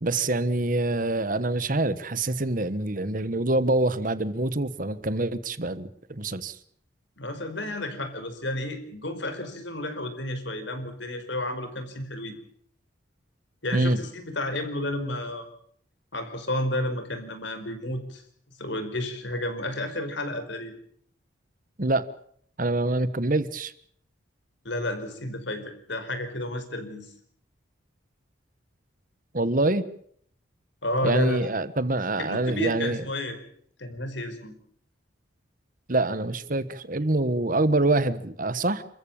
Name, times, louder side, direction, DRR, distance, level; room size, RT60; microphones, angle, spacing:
voice 1, 0.0-6.6 13.7-14.0 21.8-22.1 22.6-23.7 29.3-29.8 31.0-33.0 35.9-38.8, right 2 dB, 45° right, 14 dB, 1.2 m, -25 dB
voice 2, 7.2-12.3 13.6-15.4 16.1-18.2 18.6-20.7 24.6-27.1 30.8-31.5 32.2-33.4 33.8-34.5, left 1 dB, 60° left, 8 dB, 4.9 m, -31 dB
28.5 x 14.5 x 8.8 m, 0.64 s
head